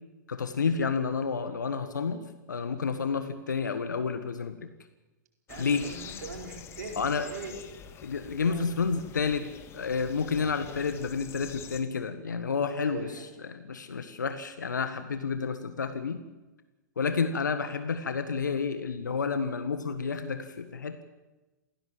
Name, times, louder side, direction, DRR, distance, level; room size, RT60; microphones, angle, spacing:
voice 1, 0.3-4.7 5.6-5.9 7.0-7.3 8.0-16.2 17.0-21.0, left 5 dB, 70° left, 10 dB, 1.5 m, -30 dB
sound 1, 5.5-11.8, left 8 dB, 25° left, 1.9 m, -46 dB
voice 2, 5.5-7.5 8.4-8.7 12.8-13.2, right 4 dB, 60° right, 2 dB, 4.7 m, -41 dB
27.5 x 16.5 x 7.5 m, 1.1 s
figure-of-eight pair, 105°, 10 cm